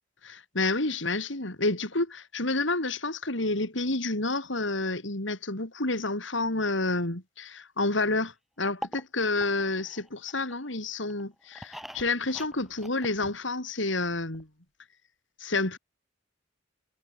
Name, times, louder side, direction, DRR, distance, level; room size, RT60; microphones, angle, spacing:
voice 1, 0.2-14.5 15.4-15.8, left 2 dB, 70° left, 3.9 m, -29 dB
sound 1, 8.6-10.7 11.1-13.8 14.0-14.1 14.3-14.4, equal, ahead, 7.2 m, -43 dB
head